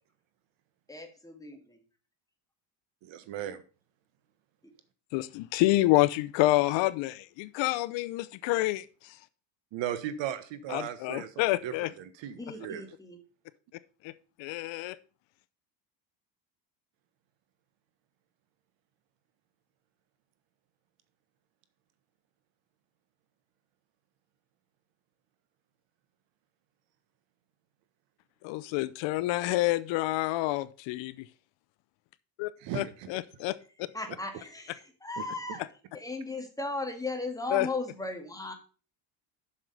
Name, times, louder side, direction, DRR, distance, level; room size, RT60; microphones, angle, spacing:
voice 1, 0.9-1.8 4.6-4.7 12.4-13.2 33.9-35.6 35.9-38.5, left 2 dB, 5° left, 4 dB, 2.0 m, -36 dB
voice 2, 3.0-3.6 9.7-12.8 32.6-33.1 35.2-35.3, right 10 dB, 65° right, 12 dB, 1.4 m, -37 dB
voice 3, 5.1-9.2 10.7-11.9 14.0-14.1 14.4-15.0 28.4-31.3 32.4-33.6 37.5-37.7, left 18 dB, 65° left, 16 dB, 0.7 m, -28 dB
7.4 x 6.4 x 6.6 m, 0.37 s
cardioid pair, 120°, 48 cm